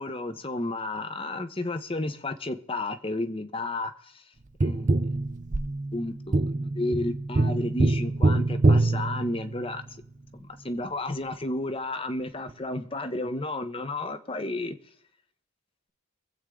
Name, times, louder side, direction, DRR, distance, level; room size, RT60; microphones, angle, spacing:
voice 1, 0.0-4.2 4.6-5.0 5.9-10.0 10.4-14.8, left 2 dB, 25° left, 0.8 m, -32 dB
Tap, 4.6-9.9 12.5-12.6, right 2 dB, 35° right, 0.6 m, -25 dB
24.0 x 8.1 x 3.7 m
head